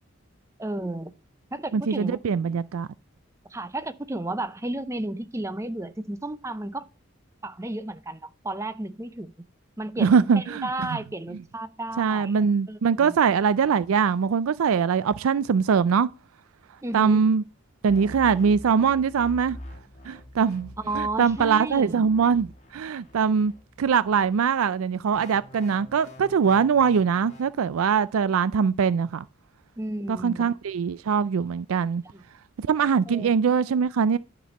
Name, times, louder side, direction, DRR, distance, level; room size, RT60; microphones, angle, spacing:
voice 1, 0.6-1.1 1.5-2.2 3.5-6.9 7.4-9.3 9.8-12.4 12.7-13.2 16.8-17.3 20.8-22.0 29.8-30.6 32.0-32.2 33.1-33.3, right 2 dB, 15° right, 0.6 m, -33 dB
voice 2, 1.7-2.9 10.0-10.7 12.0-16.1 16.9-17.4 17.8-19.6 20.0-20.7 20.9-23.5 23.8-29.2 30.1-32.0 32.6-34.2, right 6 dB, 90° right, 0.4 m, -22 dB
sound 1, 17.9-24.4 25.1-27.4, left 1 dB, 35° left, 2.0 m, -45 dB
10.0 x 6.1 x 5.2 m
head